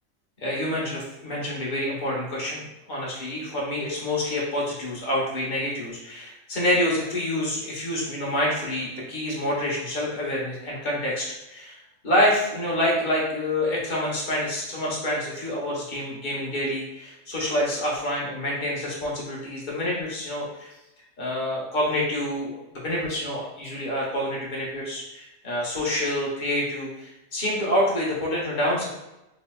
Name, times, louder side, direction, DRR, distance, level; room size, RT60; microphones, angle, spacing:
voice 1, 0.4-11.8 12.0-20.7 21.2-28.9, left 1 dB, 40° left, -4 dB, 0.9 m, -27 dB
3.2 x 2.9 x 2.2 m, 0.93 s
omnidirectional pair, 1.4 m